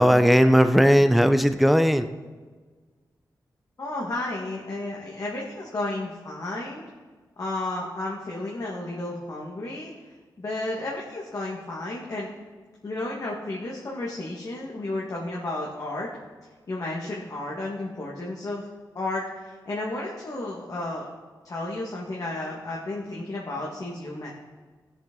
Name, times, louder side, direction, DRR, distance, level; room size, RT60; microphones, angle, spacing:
voice 1, 0.0-2.1, equal, ahead, 10 dB, 0.7 m, -17 dB
voice 2, 3.8-6.8 7.4-9.9 10.4-12.3 12.8-16.1 16.7-18.7 19.0-21.1 21.4-24.3, left 2 dB, 50° left, -4 dB, 1.8 m, -32 dB
16.5 x 7.2 x 3.9 m, 1.4 s
cardioid pair, 75°, 7 cm